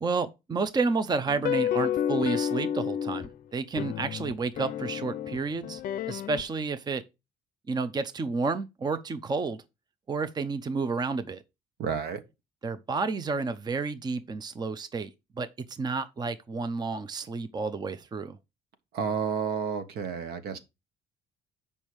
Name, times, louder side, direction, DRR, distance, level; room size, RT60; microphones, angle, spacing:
voice 1, 0.0-5.8 6.1-7.0 7.7-9.6 10.1-11.4 12.6-15.1 15.4-18.4, right 4 dB, 25° right, 0.7 m, -30 dB
sound 1, 1.3-3.3 3.8-6.4, left 10 dB, 55° left, 0.5 m, -30 dB
voice 2, 11.8-12.2 18.9-20.6, right 6 dB, 70° right, 1.4 m, -30 dB
7.1 x 5.4 x 4.7 m
cardioid pair, 110°, 17 cm